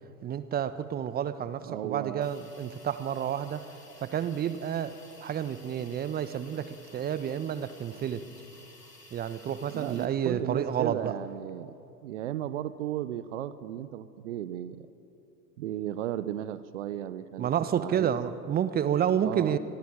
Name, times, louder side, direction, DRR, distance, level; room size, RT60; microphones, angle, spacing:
voice 1, 0.2-3.7 4.0-8.2 9.1-11.1 17.4-19.6, right 9 dB, 20° right, 14 dB, 1.2 m, -30 dB
voice 2, 1.6-2.3 9.7-11.7 12.0-14.9 15.6-18.1 19.2-19.6, right 12 dB, 50° right, 15 dB, 1.1 m, -35 dB
Hiss, 2.2-10.0, left 2 dB, 90° left, 3.8 m, -54 dB
28.0 x 22.5 x 8.9 m, 3.0 s
figure-of-eight pair, 95°, 46 cm